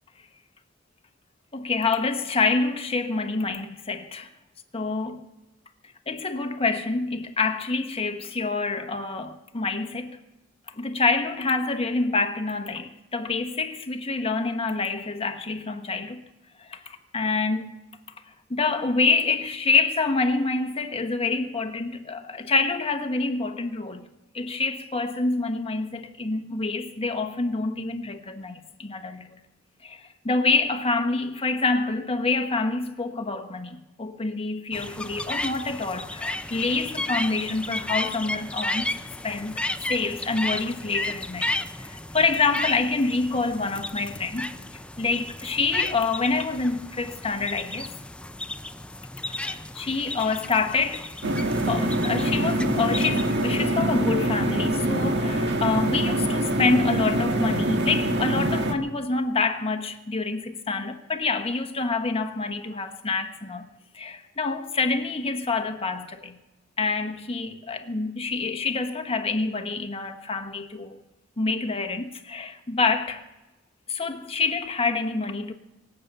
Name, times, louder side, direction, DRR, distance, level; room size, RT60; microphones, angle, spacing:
voice 1, 1.5-4.3 4.7-5.2 6.1-10.2 10.8-16.2 16.6-17.8 18.5-24.1 24.3-29.4 29.8-39.6 39.9-44.5 45.0-47.9 49.4-51.1 51.7-63.7 63.9-66.4 66.8-71.0 71.4-73.2 73.9-75.5, left 3 dB, 30° left, 1.2 m, -27 dB
sound 1, 34.7-53.7, left 1 dB, 5° left, 0.5 m, -34 dB
sound 2, 51.2-58.7, right 1 dB, 60° right, 1.5 m, -24 dB
24.0 x 8.2 x 6.7 m
head